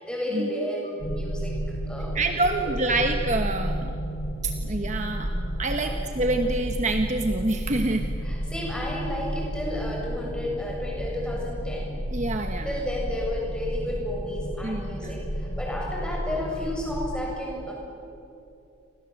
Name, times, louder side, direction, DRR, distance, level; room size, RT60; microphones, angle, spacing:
voice 1, 0.0-1.6 1.9-2.8 5.8-6.0 8.2-11.9 12.6-17.7, left 1 dB, 5° left, -2 dB, 7.3 m, -32 dB
sound 1, 1.0-17.2, equal, 55° left, 4.1 m, -32 dB
voice 2, 2.1-3.9 4.4-5.3 5.6-8.1 12.1-12.7 14.6-15.1, right 2 dB, 35° right, 5 dB, 1.2 m, -27 dB
29.5 x 24.5 x 7.8 m, 2.8 s
head